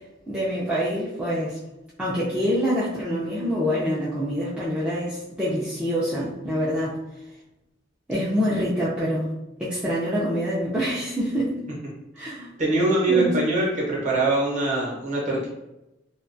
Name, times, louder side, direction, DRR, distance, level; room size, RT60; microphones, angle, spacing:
voice 1, 0.3-1.6 2.0-7.0 8.1-9.3 9.6-11.6 12.1-12.5 13.1-13.3, equal, 5° right, -9 dB, 0.4 m, -26 dB
voice 2, 12.6-15.5, right 2 dB, 40° right, -4 dB, 0.8 m, -23 dB
2.2 x 2.2 x 2.5 m, 0.95 s
head